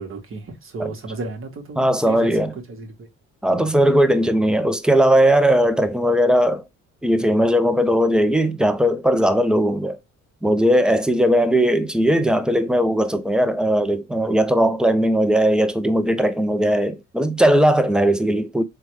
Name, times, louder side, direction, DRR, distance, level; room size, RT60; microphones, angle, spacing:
voice 1, 0.0-2.3 2.7-3.1 3.5-3.8, right 3 dB, 45° right, 1.1 m, -34 dB
voice 2, 1.8-2.5 3.4-6.6 7.0-10.0 10.4-18.6, equal, 5° right, 0.4 m, -18 dB
3.4 x 2.2 x 2.9 m
cardioid pair, 90°, 30 cm